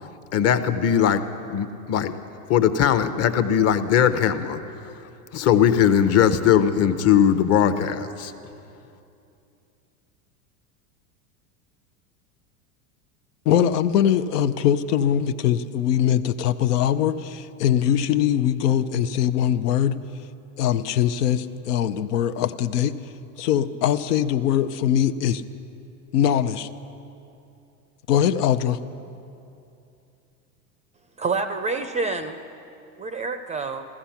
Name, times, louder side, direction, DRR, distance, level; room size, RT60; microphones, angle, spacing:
voice 1, 0.3-1.2 1.5-2.2 2.5-4.6 5.3-8.3, left 9 dB, 35° left, 10 dB, 0.8 m, -19 dB
voice 2, 13.5-20.0 20.6-23.0 23.4-25.4 26.1-26.7 28.1-28.8, left 10 dB, 80° left, 11 dB, 0.8 m, -22 dB
voice 3, 31.2-32.4 33.0-33.8, right 4 dB, 15° right, 9 dB, 0.4 m, -27 dB
15.0 x 14.5 x 5.8 m, 2.7 s
hypercardioid pair, 105°, 47 cm